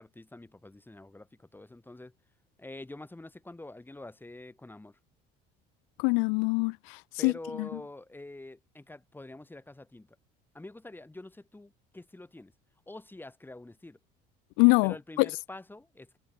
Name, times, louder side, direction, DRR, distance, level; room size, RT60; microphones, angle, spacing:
voice 1, 0.0-2.1 2.6-5.0 7.2-10.1 10.5-12.5 12.9-14.0 14.8-16.2, left 2 dB, 10° left, 4.6 m, -46 dB
voice 2, 6.0-7.3 7.6-7.7 14.6-15.3, left 39 dB, 80° left, 0.8 m, -24 dB
supercardioid pair, 95°, 20 cm